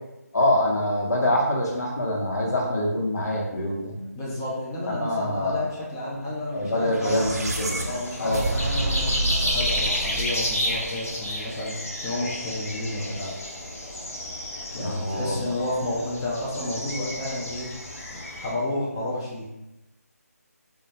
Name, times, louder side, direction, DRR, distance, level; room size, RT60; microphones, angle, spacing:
voice 1, 0.3-3.9 4.9-5.6 6.5-7.8 8.2-8.4 14.7-15.3, left 1 dB, 85° left, -3 dB, 0.8 m, -25 dB
voice 2, 4.1-7.2 7.8-13.3 14.7-17.7 18.1-19.4, left 1 dB, 15° left, -7 dB, 0.4 m, -31 dB
sound 1, 6.8-11.2, right 1 dB, 70° right, 0.4 m, -29 dB
sound 2, 7.0-18.5, equal, 60° left, 0.7 m, -32 dB
2.2 x 2.0 x 2.8 m, 0.97 s
figure-of-eight pair, 160°, 9 cm